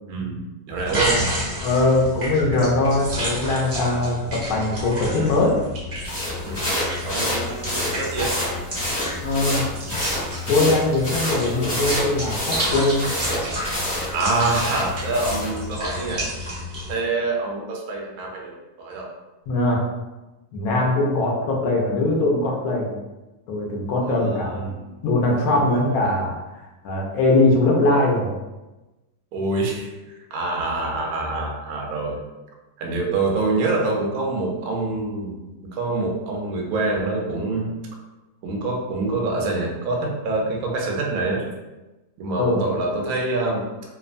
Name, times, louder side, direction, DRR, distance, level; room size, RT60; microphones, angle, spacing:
voice 1, 0.1-1.3 6.5-8.4 14.1-16.3 16.9-19.1 24.0-24.9 25.5-26.0 29.3-30.0 30.3-32.2 32.8-37.7 38.4-41.5 42.2-43.7, right 3 dB, 70° right, 0 dB, 0.9 m, -26 dB
sound 1, 0.7-16.9, equal, 45° right, 0.8 m, -30 dB
voice 2, 1.6-5.6 9.2-9.6 10.5-13.1 19.5-19.8 20.5-23.0 23.5-24.7 25.0-28.3 42.4-42.6, left 2 dB, 70° left, -1 dB, 0.9 m, -21 dB
sound 2, 6.0-15.6, left 1 dB, 10° left, 0.7 m, -28 dB
2.9 x 2.0 x 2.5 m, 1.1 s
omnidirectional pair, 1.9 m